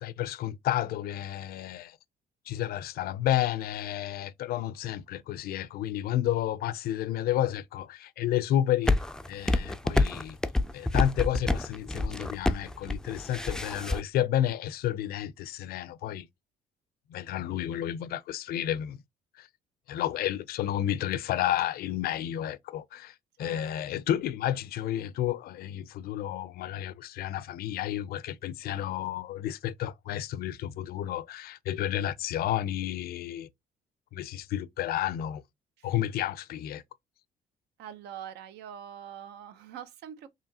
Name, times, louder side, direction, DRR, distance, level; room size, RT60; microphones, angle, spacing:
voice 1, 0.0-2.0 2.5-8.9 9.3-10.4 10.7-16.3 17.1-19.0 19.4-19.5 19.9-33.5 34.1-35.4 35.8-36.8, left 12 dB, 65° left, 0.5 m, -31 dB
sound 1, 8.9-14.0, left 2 dB, 5° left, 0.3 m, -27 dB
voice 2, 37.8-40.3, right 9 dB, 80° right, 0.7 m, -44 dB
4.9 x 2.8 x 2.7 m
cardioid pair, 110°, 17 cm